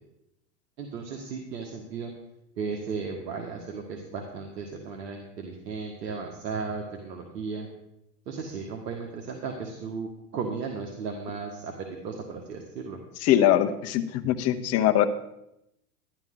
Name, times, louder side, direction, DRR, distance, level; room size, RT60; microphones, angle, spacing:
voice 1, 0.8-2.1 2.6-7.7 8.3-13.0, right 5 dB, 80° right, 2 dB, 1.8 m, -35 dB
voice 2, 13.2-15.0, left 11 dB, 30° left, 8 dB, 0.9 m, -22 dB
12.0 x 11.0 x 3.8 m, 0.85 s
hypercardioid pair, 125°, 48 cm